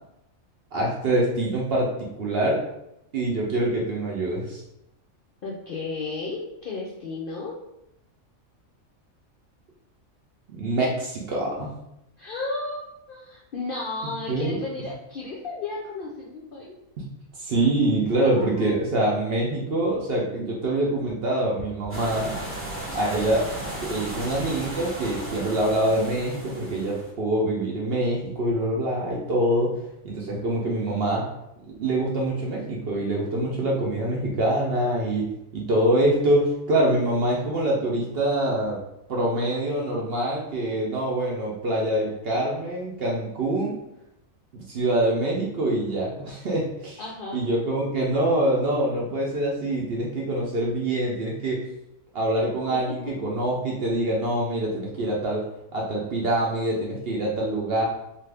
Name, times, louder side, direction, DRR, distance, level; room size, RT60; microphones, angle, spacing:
voice 1, 0.7-1.9 2.2-2.6 3.1-4.6 10.5-11.7 14.3-14.6 17.0-17.1 17.4-22.3 22.9-23.4 23.8-29.7 30.0-31.3 31.8-35.2 35.5-38.8 39.1-43.8 44.5-47.0 47.3-51.6 52.1-55.4 55.7-57.9, right 1 dB, 60° right, -3 dB, 0.7 m, -25 dB
voice 2, 5.4-7.5 12.2-16.7 18.2-18.7 47.0-47.4 52.9-53.0 53.7-53.8, left 3 dB, 65° left, -4 dB, 0.5 m, -34 dB
sound 1, 21.9-27.1, right 1 dB, 20° right, 0.4 m, -35 dB
2.6 x 2.4 x 3.3 m, 0.84 s
omnidirectional pair, 1.4 m